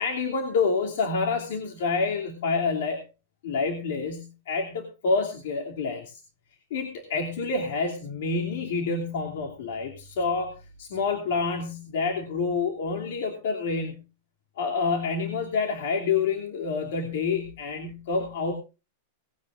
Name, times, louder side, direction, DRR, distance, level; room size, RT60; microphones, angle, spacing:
voice 1, 0.0-3.0 3.4-6.2 6.7-14.0 14.6-18.5, left 4 dB, 70° left, 1 dB, 2.8 m, -28 dB
19.0 x 16.0 x 2.5 m, 0.31 s
supercardioid pair, 160°, 0 cm